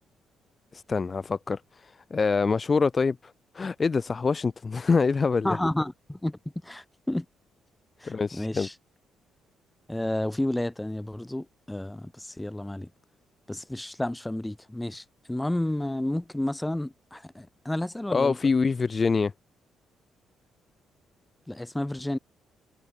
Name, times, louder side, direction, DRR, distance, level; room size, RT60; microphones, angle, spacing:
voice 1, 0.7-5.6 8.0-8.7 18.1-19.3, left 4 dB, 35° left, 0.5 m, -25 dB
voice 2, 5.4-7.2 8.0-8.7 9.9-12.9 13.5-18.4 21.5-22.2, left 1 dB, 10° left, 1.3 m, -31 dB
cardioid pair, 90°, 0 cm